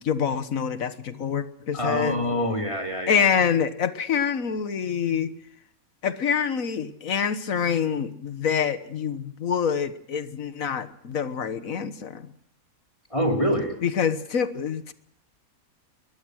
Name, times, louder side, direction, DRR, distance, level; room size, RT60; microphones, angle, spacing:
voice 1, 0.0-2.2 3.1-5.3 6.0-12.3 13.8-14.9, left 7 dB, 70° left, 11 dB, 1.7 m, -26 dB
voice 2, 1.7-3.2 13.1-13.7, equal, 20° left, 2 dB, 2.9 m, -25 dB
22.0 x 19.0 x 6.4 m, 0.71 s
omnidirectional pair, 1.5 m